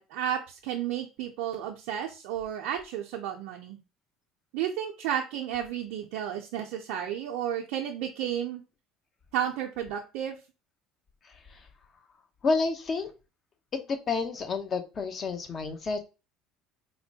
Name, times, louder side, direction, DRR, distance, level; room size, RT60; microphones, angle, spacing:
voice 1, 0.0-3.8 4.5-8.6 9.3-10.4, right 10 dB, 75° right, 1 dB, 0.4 m, -32 dB
voice 2, 12.4-13.1 13.7-16.0, left 4 dB, 40° left, 7 dB, 0.7 m, -29 dB
4.2 x 2.2 x 2.7 m, 0.29 s
hypercardioid pair, 80°, 0 cm